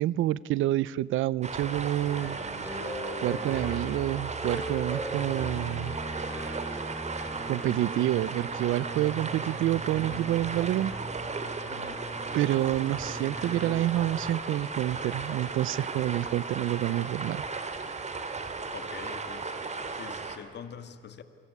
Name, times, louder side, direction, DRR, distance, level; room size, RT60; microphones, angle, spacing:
voice 1, 0.0-2.4 3.2-6.0 7.5-10.9 12.3-17.4, right 14 dB, 85° right, 22 dB, 0.6 m, -28 dB
sound 1, 1.4-20.4, right 4 dB, 35° right, 3.2 m, -36 dB
sound 2, 2.0-13.8, right 1 dB, 10° right, 4.8 m, -39 dB
voice 2, 11.7-12.1 18.7-19.4 19.9-21.2, left 7 dB, 60° left, 11 dB, 2.3 m, -44 dB
28.5 x 23.0 x 8.6 m, 2.3 s
cardioid pair, 90°, 20 cm